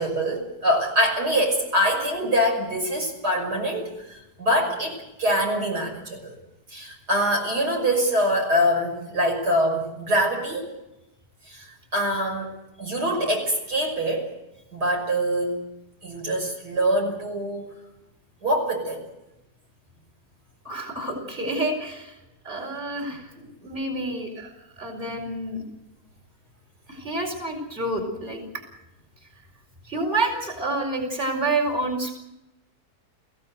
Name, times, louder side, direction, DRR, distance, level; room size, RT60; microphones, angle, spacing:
voice 1, 0.0-6.3 6.7-10.7 11.5-12.5 12.8-14.3 14.7-15.6 16.0-17.7 18.4-19.0, equal, 90° right, 1 dB, 6.6 m, -24 dB
voice 2, 20.6-22.1 22.4-23.2 23.6-24.5 24.8-25.6 26.9-28.4 29.9-32.1, right 2 dB, 30° right, 3 dB, 4.8 m, -28 dB
23.5 x 16.5 x 7.9 m, 0.91 s
omnidirectional pair, 1.7 m